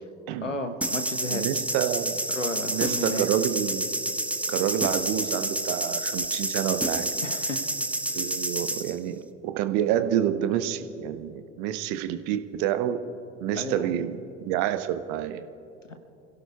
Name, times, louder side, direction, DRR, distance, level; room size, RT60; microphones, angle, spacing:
voice 1, 0.4-1.5 2.3-3.3 7.2-7.6 8.1-8.3 13.5-14.1, left 2 dB, 90° left, 8 dB, 1.2 m, -33 dB
sound 1, 0.8-8.9, right 1 dB, 5° right, 0.7 m, -29 dB
voice 2, 1.3-2.2 2.7-3.8 4.5-7.1 8.1-13.0 13.4-15.5, right 11 dB, 50° right, 10 dB, 1.0 m, -28 dB
29.5 x 16.5 x 2.4 m, 2.9 s
figure-of-eight pair, 70°, 36 cm